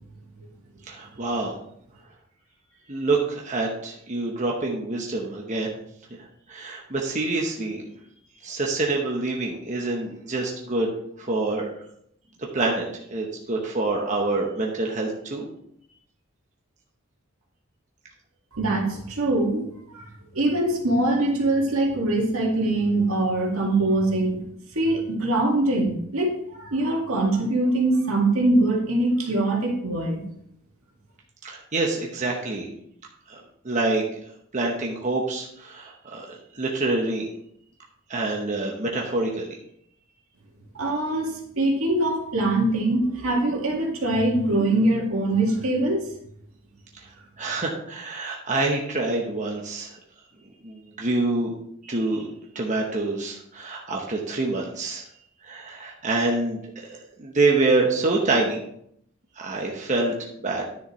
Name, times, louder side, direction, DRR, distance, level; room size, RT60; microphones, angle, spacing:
voice 1, 0.9-1.5 2.9-5.7 6.5-7.9 8.4-10.9 11.2-11.7 12.5-15.5 31.4-32.7 33.3-33.4 33.6-34.0 34.5-36.3 36.5-37.3 38.1-39.6 47.4-50.0 50.6-51.5 51.8-52.3 52.5-55.1 55.4-58.6 59.4-60.1 60.4-60.6, right 2 dB, 35° right, -1 dB, 1.0 m, -26 dB
voice 2, 18.5-20.0 20.3-24.4 24.7-30.3 40.7-46.0, right 2 dB, 85° right, 0 dB, 2.1 m, -23 dB
10.0 x 6.6 x 3.2 m, 0.70 s
head